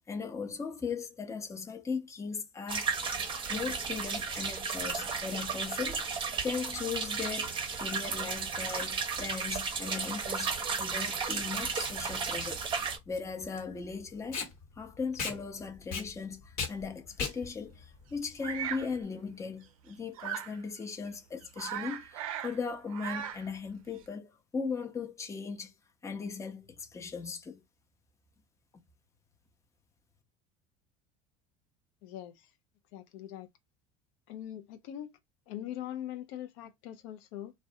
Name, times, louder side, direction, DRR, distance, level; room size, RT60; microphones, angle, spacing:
voice 1, 0.1-2.9 3.5-10.5 10.8-14.4 14.8-25.7 26.0-27.6, left 5 dB, 15° left, 0.5 m, -38 dB
sound 1, 2.7-13.0, right 5 dB, 30° right, 0.6 m, -34 dB
Packing tape duct tape, 11.6-19.0, left 5 dB, 55° left, 1.2 m, -39 dB
Bird vocalization bird call bird song, 18.4-18.9 20.2-20.6 21.1-21.2 21.4-22.6 22.8-23.5, right 9 dB, 90° right, 0.4 m, -38 dB
voice 2, 32.0-32.5 32.9-33.5 34.3-35.2 35.5-37.5, left 11 dB, 75° left, 0.5 m, -42 dB
2.3 x 2.1 x 2.6 m
supercardioid pair, 95°, 17 cm